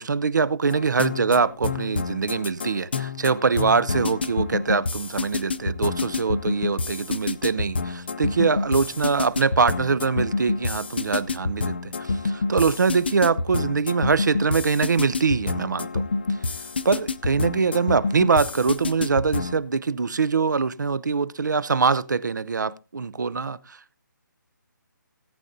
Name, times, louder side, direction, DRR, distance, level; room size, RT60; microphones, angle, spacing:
voice 1, 0.0-16.0 16.8-24.0, right 5 dB, 60° right, 0.6 m, -23 dB
sound 1, 0.7-19.6, left 3 dB, 30° left, 0.5 m, -28 dB
18.5 x 8.7 x 2.7 m
hypercardioid pair, 180°, 11 cm